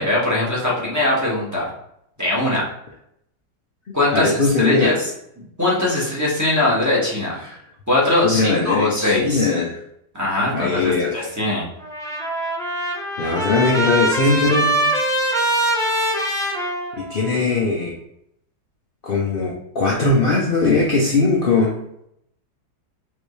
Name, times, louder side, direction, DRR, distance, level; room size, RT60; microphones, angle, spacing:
voice 1, 0.0-1.7 2.2-2.7 3.9-5.1 5.6-7.4 7.9-9.5 10.1-11.7 14.1-14.9 17.3-17.6, left 1 dB, 10° right, -6 dB, 1.3 m, -21 dB
voice 2, 4.1-4.9 7.4-7.6 8.2-9.7 10.5-11.3 13.2-14.8 17.1-17.9 19.0-21.8, left 3 dB, 65° left, -3 dB, 0.5 m, -19 dB
Trumpet, 11.8-17.4, right 1 dB, 5° left, 0.4 m, -23 dB
4.9 x 3.1 x 3.2 m, 0.75 s
omnidirectional pair, 1.8 m